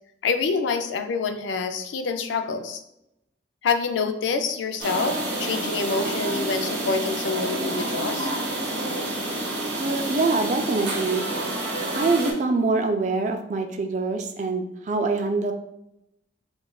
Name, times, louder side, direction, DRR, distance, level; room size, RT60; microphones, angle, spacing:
voice 1, 0.2-2.8 3.6-8.3, left 4 dB, 85° left, 7 dB, 0.4 m, -26 dB
sound 1, 4.8-12.3, right 1 dB, 75° right, 1.0 m, -29 dB
voice 2, 9.8-11.3 11.9-15.5, right 3 dB, 40° right, 5 dB, 0.4 m, -24 dB
5.1 x 2.4 x 2.2 m, 0.82 s
head